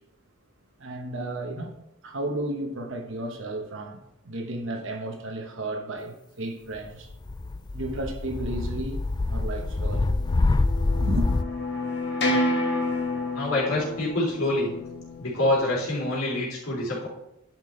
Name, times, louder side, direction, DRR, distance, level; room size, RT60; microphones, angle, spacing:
voice 1, 0.8-1.7 2.0-7.1 7.7-9.0 9.3-10.1 11.0-11.3, right 1 dB, 65° right, 1.1 m, -33 dB
sound 1, 7.1-11.4, left 2 dB, 20° left, 0.3 m, -25 dB
sound 2, 10.0-15.9, left 1 dB, 55° left, 1.4 m, -30 dB
voice 2, 13.3-14.7 15.2-17.1, left 1 dB, 85° left, 3.3 m, -26 dB
10.5 x 6.0 x 3.3 m
head